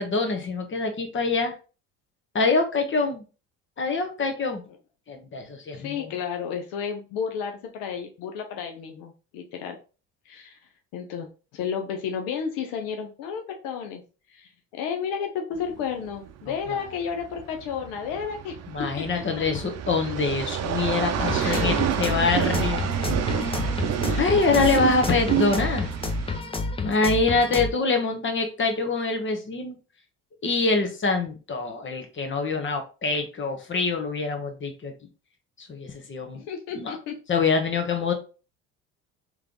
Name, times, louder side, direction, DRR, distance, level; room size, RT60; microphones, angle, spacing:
voice 1, 0.0-1.5 2.3-3.2 3.8-4.6 5.1-6.0 16.5-16.8 18.7-22.9 24.2-25.9 26.8-29.8 30.4-34.9 35.6-36.4 36.7-37.0 37.3-38.1, left 4 dB, 35° left, 4 dB, 1.3 m, -25 dB
voice 2, 5.7-9.8 10.3-10.6 10.9-14.0 14.3-18.5 19.0-19.1 21.4-22.3 24.0-24.4 36.3-37.2, left 7 dB, 80° left, 4 dB, 0.8 m, -32 dB
sound 1, 15.6-26.4, right 10 dB, 50° right, 0.6 m, -29 dB
sound 2, 21.2-27.7, left 3 dB, 15° left, 0.6 m, -30 dB
3.4 x 3.2 x 3.9 m, 0.34 s
supercardioid pair, 80°, 33 cm